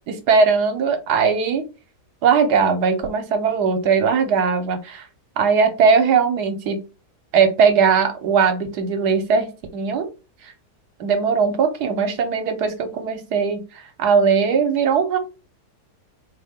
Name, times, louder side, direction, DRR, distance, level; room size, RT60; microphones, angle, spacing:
voice 1, 0.1-1.6 2.2-5.1 5.4-6.9 7.3-10.1 10.4-10.5 11.0-15.2, right 5 dB, 70° right, 6 dB, 1.3 m, -19 dB
4.3 x 2.1 x 3.6 m, 0.30 s
omnidirectional pair, 1.9 m